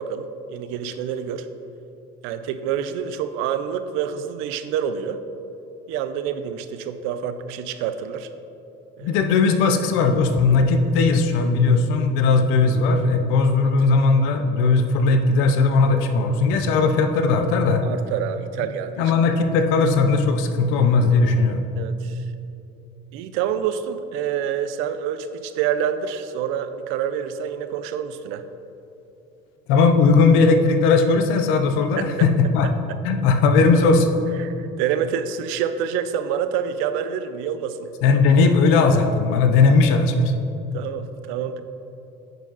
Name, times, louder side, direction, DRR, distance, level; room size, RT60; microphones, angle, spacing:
voice 1, 0.0-1.5 2.2-5.2 5.9-8.3 9.0-9.2 17.8-19.1 21.8-22.2 23.1-28.5 32.0-32.3 34.4-37.9 40.7-41.6, right 8 dB, 80° right, 11 dB, 0.5 m, -27 dB
voice 2, 9.0-17.8 19.0-21.6 29.7-32.7 33.0-34.1 38.0-40.3, left 4 dB, 75° left, 6 dB, 0.7 m, -18 dB
9.0 x 5.1 x 4.0 m, 2.8 s
cardioid pair, 155°, 21 cm